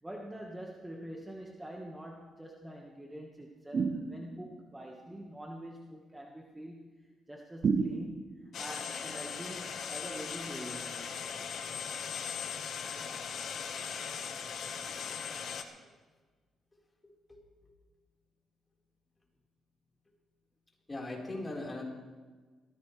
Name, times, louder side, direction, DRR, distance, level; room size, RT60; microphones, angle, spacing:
voice 1, 0.0-11.2, right 1 dB, 10° right, 0 dB, 1.6 m, -45 dB
sound 1, 3.7-4.6 7.6-8.5, right 5 dB, 45° right, 0.9 m, -31 dB
sound 2, 8.5-15.6, left 7 dB, 65° left, 1.4 m, -39 dB
voice 2, 17.3-17.7 20.9-21.8, left 2 dB, 20° left, -2 dB, 4.6 m, -40 dB
21.0 x 16.5 x 3.4 m, 1.4 s
cardioid pair, 90°, 0 cm